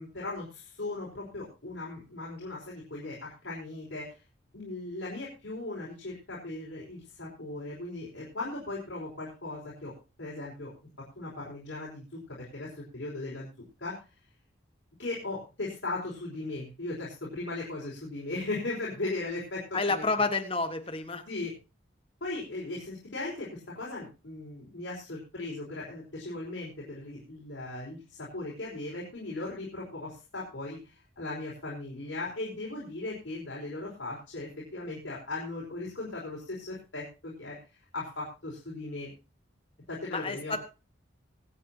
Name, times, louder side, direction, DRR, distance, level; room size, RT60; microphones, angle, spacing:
voice 1, 0.0-4.2 4.5-10.7 11.1-13.5 13.8-14.0 15.0-20.0 21.3-21.5 22.2-37.6 37.9-39.1 39.9-40.6, left 2 dB, 70° left, -6 dB, 5.0 m, -38 dB
voice 2, 19.7-21.2 40.1-40.6, left 3 dB, 30° left, 7 dB, 1.5 m, -29 dB
24.5 x 8.6 x 2.9 m, 0.31 s
head